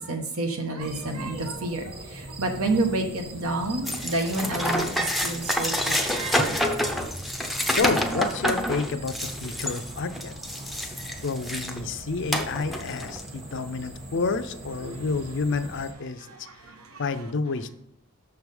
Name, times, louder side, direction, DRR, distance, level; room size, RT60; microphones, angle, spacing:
voice 1, 0.0-6.6 14.8-15.1 16.2-17.0, right 2 dB, 70° right, 4 dB, 1.2 m, -30 dB
sound 1, 0.8-15.9, right 1 dB, 30° right, 1.3 m, -41 dB
sound 2, 3.9-11.8 12.3-13.3, equal, ahead, 0.6 m, -28 dB
voice 2, 7.8-10.3 11.2-16.3 17.0-17.7, left 4 dB, 55° left, 10 dB, 0.5 m, -29 dB
6.6 x 4.7 x 5.3 m, 0.73 s
head